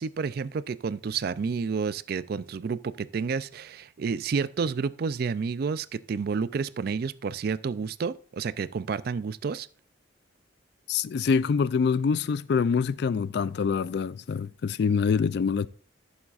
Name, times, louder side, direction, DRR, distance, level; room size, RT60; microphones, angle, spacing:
voice 1, 0.0-9.7, right 5 dB, 50° right, 0.3 m, -30 dB
voice 2, 10.9-15.7, left 5 dB, 55° left, 0.3 m, -25 dB
14.0 x 7.2 x 2.4 m
head